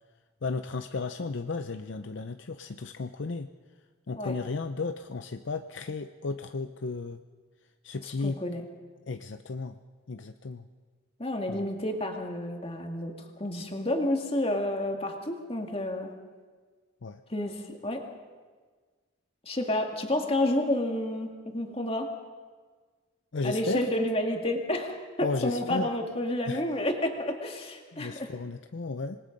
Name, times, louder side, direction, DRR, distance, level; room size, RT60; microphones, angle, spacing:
voice 1, 0.4-3.5 4.1-7.2 7.8-8.4 9.1-9.8 10.1-10.6 11.5-11.7 17.0-17.2 23.3-23.9 25.2-25.9 26.5-26.6 27.9-29.2, left 3 dB, 60° left, 9 dB, 0.6 m, -34 dB
voice 2, 8.0-8.6 11.2-13.1 13.4-16.1 17.3-18.0 19.4-22.1 23.4-28.3, left 1 dB, 25° left, 2 dB, 2.2 m, -30 dB
26.5 x 20.0 x 5.3 m, 1.5 s
head